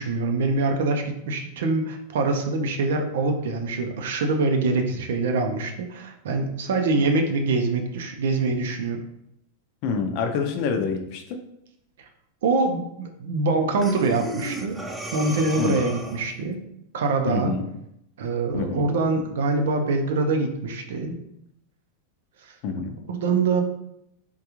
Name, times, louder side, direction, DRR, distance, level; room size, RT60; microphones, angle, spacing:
voice 1, 0.0-9.0 12.4-14.8 15.1-16.6 16.9-17.6 18.2-21.2 23.1-23.6, right 3 dB, 75° right, 4 dB, 0.6 m, -24 dB
voice 2, 9.8-11.2 15.6-15.8 17.3-17.6 18.5-18.9 22.6-22.9, left 5 dB, 55° left, 5 dB, 0.5 m, -26 dB
Breathing, 13.8-16.4, right 1 dB, ahead, 0.4 m, -34 dB
3.6 x 2.3 x 3.0 m, 0.78 s
supercardioid pair, 130°, 0 cm